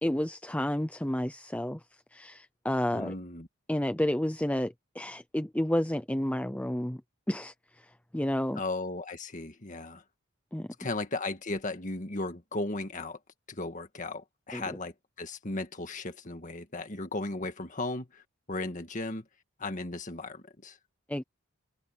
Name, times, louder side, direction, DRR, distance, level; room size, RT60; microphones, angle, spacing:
voice 1, 0.0-1.8 2.1-3.1 3.7-7.0 7.3-7.5 8.1-8.6 10.5-10.7 14.5-14.8 21.1-21.2, left 1 dB, 5° left, 0.6 m, -30 dB
voice 2, 2.9-3.5 8.6-10.0 10.8-13.2 13.5-18.2 18.5-19.3 19.6-20.8, left 2 dB, 40° left, 1.9 m, -36 dB
head